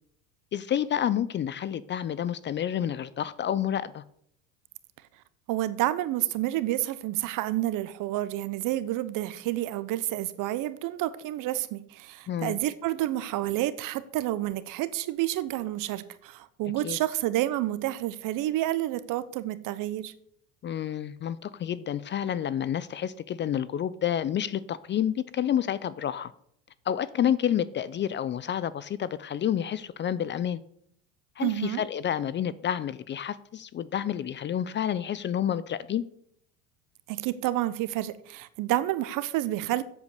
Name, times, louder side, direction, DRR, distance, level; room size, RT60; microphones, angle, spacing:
voice 1, 0.5-4.0 12.3-12.6 16.8-17.0 20.6-26.3 26.9-30.6 31.4-36.0, left 10 dB, 30° left, 0.5 m, -29 dB
voice 2, 5.5-20.1 31.4-31.8 37.1-39.8, right 15 dB, 55° right, 1.0 m, -29 dB
8.3 x 8.0 x 6.7 m
hypercardioid pair, 90°, 39 cm